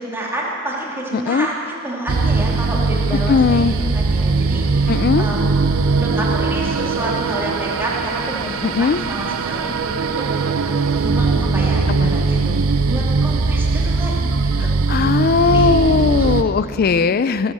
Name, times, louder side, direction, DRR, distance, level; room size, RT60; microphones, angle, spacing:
voice 1, 0.0-5.5 5.9-10.7 11.0-12.6 12.9-14.9 15.4-15.7 16.2-16.3 16.7-17.1, right 1 dB, 10° right, -4 dB, 2.4 m, -29 dB
voice 2, 1.1-1.5 3.3-3.8 4.9-5.3 8.6-9.0 12.0-12.1 14.6-17.5, left 5 dB, 45° left, 15 dB, 0.3 m, -18 dB
sound 1, 2.1-16.4, right 4 dB, 70° right, 0.6 m, -20 dB
17.5 x 7.9 x 7.4 m, 2.4 s
head